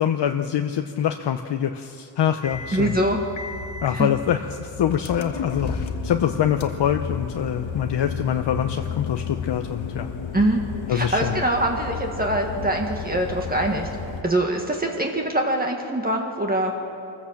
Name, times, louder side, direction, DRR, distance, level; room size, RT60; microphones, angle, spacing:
voice 1, 0.0-2.9 3.8-10.1 10.9-11.4, left 9 dB, 65° left, 6 dB, 0.9 m, -24 dB
sound 1, 2.4-14.2, left 5 dB, 80° left, 1.6 m, -33 dB
voice 2, 2.7-3.2 3.9-4.1 10.3-10.6 10.9-13.9 14.2-16.7, right 1 dB, 20° right, 1 dB, 1.7 m, -23 dB
25.5 x 14.5 x 7.4 m, 2.7 s
wide cardioid pair, 120°, 46 cm